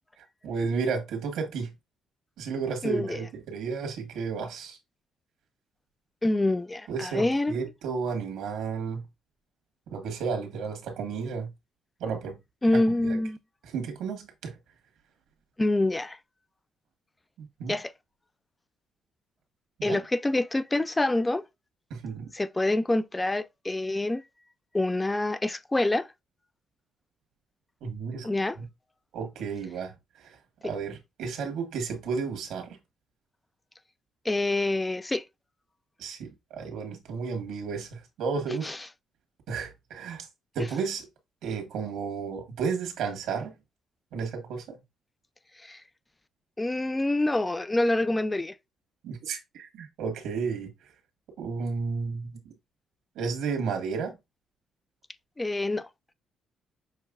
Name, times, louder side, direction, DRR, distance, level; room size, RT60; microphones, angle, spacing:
voice 1, 0.2-1.7 2.4-4.8 6.9-9.0 9.9-11.5 12.0-12.4 12.7-13.2 13.6-14.6 17.4-17.8 19.8-20.0 21.9-22.3 27.8-28.3 28.6-28.7 29.1-30.4 30.6-32.8 36.0-38.7 39.5-40.3 40.5-41.0 41.4-43.5 44.1-44.8 49.0-50.7 51.4-52.5 53.1-54.2, right 5 dB, 85° right, 1.4 m, -32 dB
voice 2, 2.8-3.2 6.2-7.5 12.6-13.4 15.6-16.2 17.7-17.9 19.8-21.4 22.3-24.2 24.7-26.1 28.2-28.6 34.2-35.2 38.6-38.8 40.6-40.7 45.6-45.8 46.6-48.5 55.4-55.9, left 2 dB, 15° left, 0.4 m, -26 dB
6.6 x 3.1 x 2.4 m
cardioid pair, 90°, 0 cm